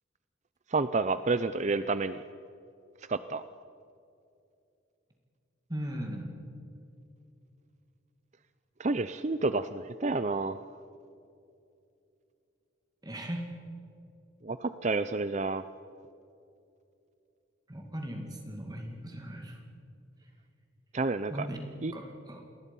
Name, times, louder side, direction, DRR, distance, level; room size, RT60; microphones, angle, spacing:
voice 1, 0.7-2.2 3.0-3.4 8.8-10.6 14.4-15.6 20.9-21.5 21.8-21.9, right 3 dB, 35° right, 12 dB, 0.5 m, -30 dB
voice 2, 5.7-6.4 13.0-13.5 17.7-19.6 21.3-21.6 21.9-22.4, equal, 20° right, 2 dB, 2.3 m, -38 dB
28.5 x 20.0 x 5.4 m, 2.6 s
head